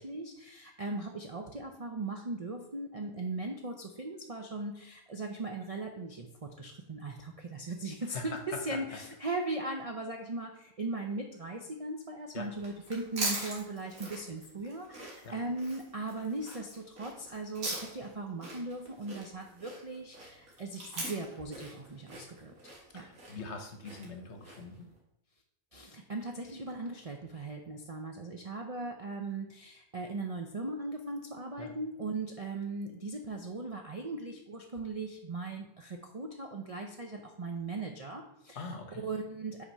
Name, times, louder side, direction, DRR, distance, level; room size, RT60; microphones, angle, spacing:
voice 1, 0.0-8.4 8.6-23.0 25.7-38.7 39.0-39.6, right 2 dB, 45° right, 2 dB, 0.4 m, -38 dB
voice 2, 8.1-8.8 12.3-12.5 15.2-15.4 22.9-24.9 31.6-31.7 38.5-39.0, left 4 dB, 55° left, 5 dB, 1.1 m, -42 dB
sound 1, 12.5-24.8, right 2 dB, 80° right, 2.3 m, -41 dB
5.8 x 4.3 x 5.4 m, 0.81 s
omnidirectional pair, 1.5 m